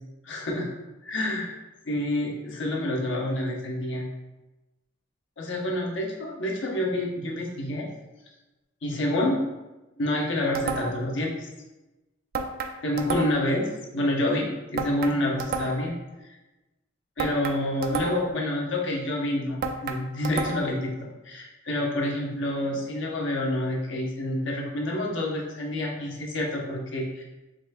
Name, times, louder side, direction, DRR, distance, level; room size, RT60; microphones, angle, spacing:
voice 1, 0.2-0.7 1.0-1.5 1.9-4.1 5.4-7.9 8.8-9.4 10.0-11.5 12.8-13.7 13.9-15.9 17.2-27.2, left 1 dB, 65° left, -1 dB, 0.8 m, -28 dB
sound 1, 10.5-11.1 12.3-13.6 14.8-16.0 17.2-18.4 19.6-20.8, right 4 dB, 50° right, 0.3 m, -31 dB
4.9 x 3.2 x 2.2 m, 1.1 s
head